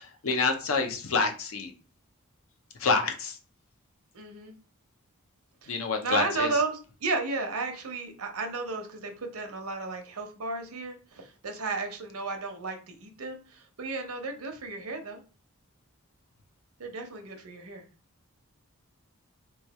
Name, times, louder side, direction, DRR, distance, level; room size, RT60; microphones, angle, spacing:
voice 1, 0.0-1.7 2.8-3.4 5.7-6.5, left 4 dB, 70° left, 5 dB, 0.6 m, -27 dB
voice 2, 4.1-4.5 5.6-5.7 6.0-15.2 16.8-17.8, right 3 dB, 75° right, 5 dB, 0.8 m, -33 dB
3.1 x 2.3 x 4.1 m, 0.37 s
head